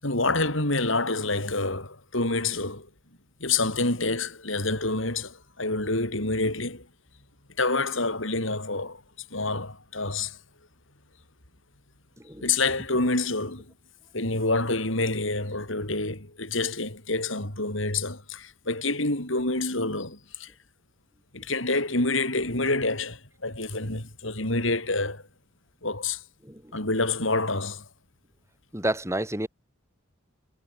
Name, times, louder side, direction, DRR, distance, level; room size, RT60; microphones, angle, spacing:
voice 1, 0.0-2.9 3.4-6.9 7.6-9.0 9.3-10.4 12.4-13.7 14.1-20.5 21.3-25.2 25.8-26.2 26.7-27.9, left 2 dB, 65° left, 7.3 m, -27 dB
voice 2, 28.7-29.5, right 1 dB, 15° right, 4.7 m, -29 dB
head